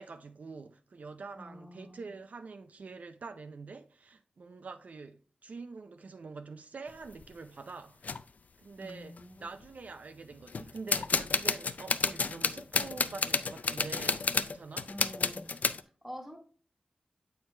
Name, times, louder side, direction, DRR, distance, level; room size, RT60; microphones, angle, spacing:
voice 1, 0.0-8.1 8.6-14.9, right 4 dB, 65° right, 0.4 m, -46 dB
voice 2, 1.3-2.2 8.8-9.5 14.9-15.6 16.0-16.4, equal, 5° right, 1.4 m, -46 dB
sound 1, 6.9-7.3 8.0-8.2 8.9-9.0 9.2-9.7 10.5-15.8, left 4 dB, 70° left, 0.4 m, -31 dB
7.4 x 4.5 x 3.2 m
wide cardioid pair, 100°, 3 cm